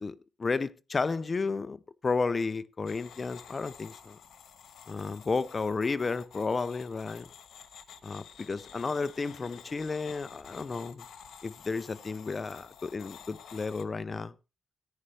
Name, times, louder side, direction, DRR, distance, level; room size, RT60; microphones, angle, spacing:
voice 1, 0.0-4.2 4.9-7.3 8.0-11.0 11.4-14.3, left 4 dB, 25° left, 0.5 m, -32 dB
sound 1, 2.9-13.8, left 7 dB, 85° left, 1.1 m, -51 dB
14.0 x 10.0 x 3.3 m
wide cardioid pair, 170°, 0 cm